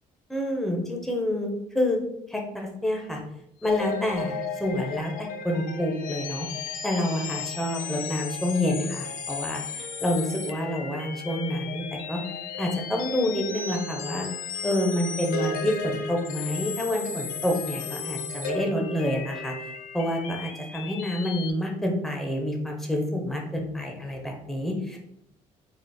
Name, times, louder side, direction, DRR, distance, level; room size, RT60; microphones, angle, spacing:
voice 1, 0.3-2.0 2.3-3.2 3.6-6.5 6.8-12.2 12.6-14.3 14.6-19.5 19.9-25.0, left 1 dB, ahead, 1 dB, 0.6 m, -28 dB
sound 1, 3.6-21.5, left 5 dB, 90° left, 0.6 m, -35 dB
4.1 x 2.5 x 4.7 m, 0.77 s
cardioid pair, 180°, 14 cm